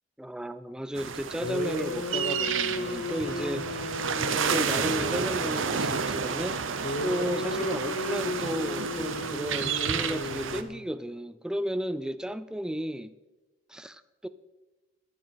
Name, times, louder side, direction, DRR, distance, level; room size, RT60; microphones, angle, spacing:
voice 1, 0.2-3.9 4.5-6.7 7.0-13.1 13.7-14.3, equal, 5° right, 0.3 m, -33 dB
sound 1, 1.0-10.6, right 6 dB, 65° right, 0.8 m, -31 dB
sound 2, 1.4-5.6 6.8-10.9, left 2 dB, 70° left, 0.8 m, -34 dB
21.0 x 7.6 x 4.4 m
head